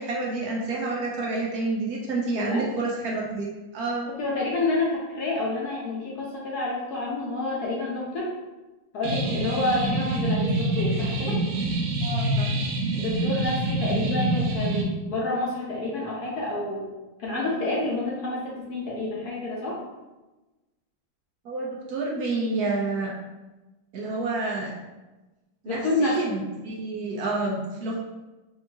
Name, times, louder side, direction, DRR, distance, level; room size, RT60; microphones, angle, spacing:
voice 1, 0.0-3.5 3.7-4.1 12.0-12.5 21.4-23.1 23.9-24.7 25.6-28.0, right 3 dB, 65° right, -3 dB, 1.0 m, -29 dB
voice 2, 4.1-8.3 8.9-11.3 13.0-16.9 17.2-19.8 25.7-26.2, left 2 dB, 60° left, -4 dB, 1.2 m, -28 dB
sound 1, 9.0-14.8, right 2 dB, 85° right, 1.5 m, -26 dB
4.5 x 2.7 x 2.8 m, 1.1 s
omnidirectional pair, 2.2 m